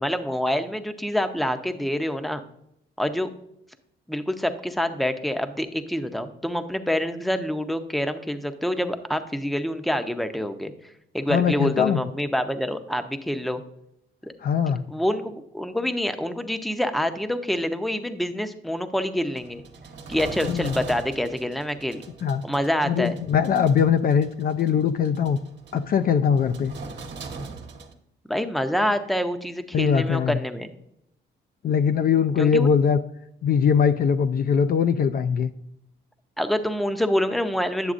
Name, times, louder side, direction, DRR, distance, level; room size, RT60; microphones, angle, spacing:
voice 1, 0.0-2.4 3.0-3.3 4.1-10.7 11.1-13.6 14.2-14.3 14.9-19.6 20.1-22.0 22.4-23.2 28.3-30.7 32.4-32.7 36.4-37.9, equal, ahead, 9 dB, 0.6 m, -26 dB
voice 2, 11.3-12.1 14.4-14.9 20.5-20.7 22.2-22.4 22.9-25.4 25.7-26.7 29.7-30.4 31.6-33.0 33.4-35.5, left 7 dB, 50° left, 10 dB, 0.4 m, -21 dB
sound 1, 19.3-27.9, right 4 dB, 60° right, 1.1 m, -41 dB
9.5 x 6.9 x 2.5 m, 0.76 s
cardioid pair, 90°, 20 cm